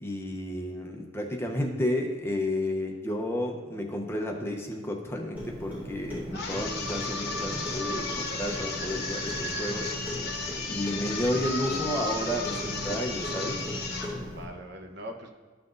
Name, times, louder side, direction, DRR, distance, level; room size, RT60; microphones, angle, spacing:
voice 1, 0.0-9.9 10.7-13.6, left 1 dB, 15° left, 2 dB, 0.7 m, -31 dB
Clock, 5.3-14.4, left 1 dB, 10° right, 1.8 m, -38 dB
sound 1, 6.3-14.2, left 3 dB, 55° left, 1.1 m, -34 dB
voice 2, 9.5-10.0 10.9-11.2 14.2-15.3, equal, 60° right, 3 dB, 1.0 m, -44 dB
13.0 x 5.8 x 2.6 m, 1.4 s
head